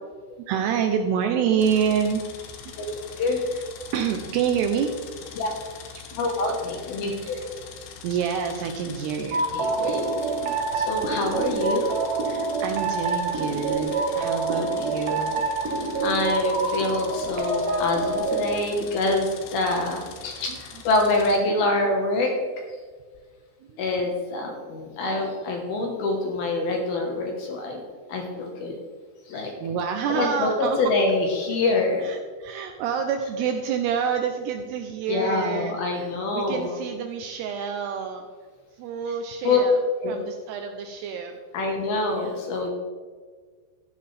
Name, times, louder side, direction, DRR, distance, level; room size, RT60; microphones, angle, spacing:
voice 1, 0.5-2.2 3.2-3.4 3.9-4.9 5.9-6.2 7.0-7.1 8.0-9.5 10.4-10.6 12.3-15.4 20.5-20.6 23.7-23.8 29.3-30.8 32.0-38.2 38.8-39.8 40.1-41.4 42.2-42.4, right 7 dB, 80° right, 5 dB, 2.5 m, -28 dB
sound 1, 1.6-21.4, left 7 dB, 85° left, 3.6 m, -43 dB
voice 2, 6.2-7.4 9.5-10.1 10.7-12.0 14.5-14.7 16.0-22.3 23.8-27.8 28.1-28.8 29.3-29.5 30.1-32.0 35.1-36.7 39.4-39.6 40.0-40.2 41.5-42.7, left 2 dB, 65° left, 1 dB, 2.7 m, -25 dB
sound 2, 9.3-18.6, right 3 dB, 65° right, 2.3 m, -26 dB
13.5 x 10.5 x 3.4 m, 1.5 s
omnidirectional pair, 5.4 m